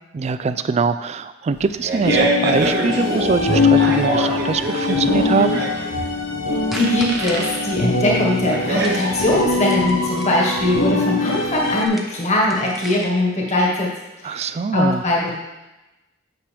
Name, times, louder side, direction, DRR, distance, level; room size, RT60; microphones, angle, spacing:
voice 1, 0.1-5.6 14.2-15.0, right 5 dB, 35° right, 12 dB, 0.3 m, -23 dB
Fart, 1.5-9.5, right 2 dB, 60° right, 1.3 m, -25 dB
sound 1, 2.0-11.9, left 4 dB, 90° left, 1.1 m, -22 dB
voice 2, 6.5-13.9 14.2-14.5 14.7-15.3, left 1 dB, 35° left, -3 dB, 1.4 m, -21 dB
sound 2, 6.7-7.4 8.8-10.7 11.8-13.2, equal, ahead, 0.7 m, -37 dB
8.6 x 6.2 x 3.4 m, 1.0 s
head